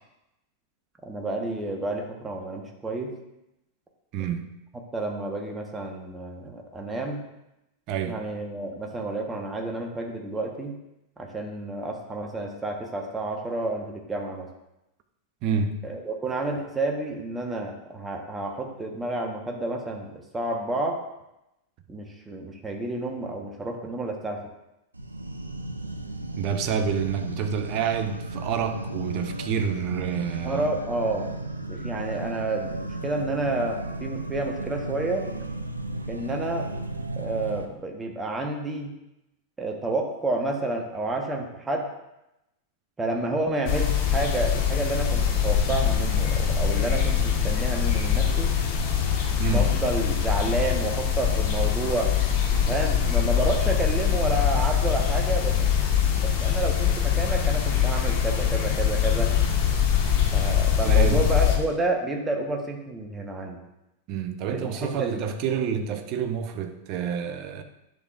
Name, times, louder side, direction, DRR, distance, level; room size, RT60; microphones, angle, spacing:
voice 1, 1.0-3.1 4.9-7.2 8.0-10.8 11.2-14.5 15.8-21.0 21.9-24.4 30.4-31.3 31.7-35.2 36.1-36.7 37.2-38.9 39.6-41.9 43.0-48.5 49.5-52.1 52.6-55.6 56.2-59.3 60.3-63.6 64.4-65.2, right 2 dB, 15° right, 1.3 m, -30 dB
voice 2, 4.1-4.5 7.9-8.2 15.4-15.8 26.4-30.7 49.4-49.7 60.8-61.2 64.1-67.6, right 7 dB, 40° right, 0.8 m, -28 dB
sound 1, 24.9-37.7, right 2 dB, 85° right, 0.6 m, -34 dB
sound 2, 43.7-61.6, left 8 dB, 45° left, 1.5 m, -23 dB
10.5 x 6.8 x 2.6 m
figure-of-eight pair, 90°, 0 cm